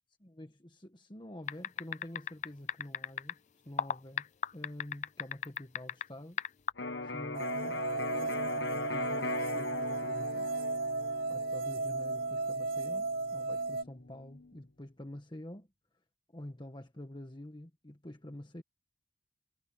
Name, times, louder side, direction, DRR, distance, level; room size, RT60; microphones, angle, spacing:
voice 1, 0.2-3.4 3.6-4.3 4.5-6.4 7.1-7.8 8.1-10.5 11.3-15.7 16.3-18.6, left 1 dB, 25° left, 1.5 m, -47 dB
sound 1, 1.5-3.3 3.8-6.0 6.4-6.7, left 8 dB, 40° left, 0.5 m, -34 dB
Electric guitar, 6.8-14.5, left 3 dB, 75° left, 1.5 m, -40 dB
sound 2, 7.3-13.8, right 3 dB, 55° right, 0.6 m, -35 dB
head